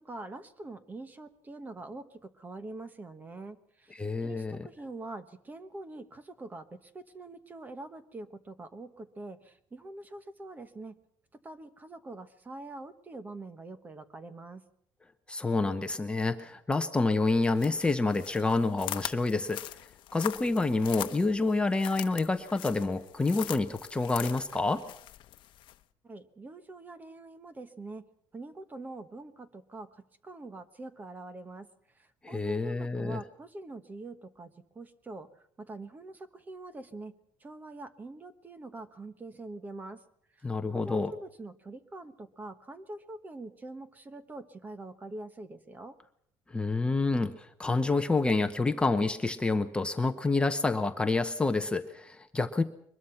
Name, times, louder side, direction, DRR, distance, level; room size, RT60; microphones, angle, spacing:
voice 1, 0.0-11.0 11.4-14.6 26.0-28.1 28.3-35.3 35.6-37.1 37.4-40.0 40.3-45.9, right 2 dB, 20° right, 11 dB, 1.2 m, -44 dB
voice 2, 3.9-4.7 15.3-19.6 20.1-24.8 32.2-33.2 40.4-41.1 46.5-52.6, left 3 dB, 10° left, 7 dB, 0.9 m, -28 dB
sound 1, 17.5-25.8, left 14 dB, 65° left, 0.9 m, -42 dB
23.0 x 21.0 x 5.8 m, 0.70 s
cardioid pair, 165°, 9 cm